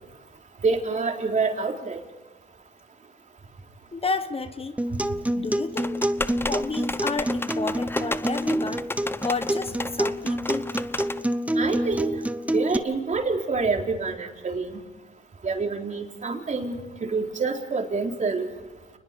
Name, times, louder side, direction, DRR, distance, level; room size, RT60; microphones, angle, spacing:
voice 1, 0.6-2.0 11.6-12.1 12.5-14.8 15.4-18.5, right 4 dB, 40° right, 2 dB, 3.9 m, -27 dB
voice 2, 3.9-4.8 5.3-6.0 6.5-8.8 9.2-10.7, left 4 dB, 30° left, 10 dB, 1.1 m, -31 dB
Acoustic guitar, 4.8-12.8, right 1 dB, 5° right, 1.0 m, -27 dB
sound 1, 5.8-11.2, left 2 dB, 10° left, 0.7 m, -32 dB
29.5 x 20.5 x 5.3 m, 1.1 s
cardioid pair, 90°, 20 cm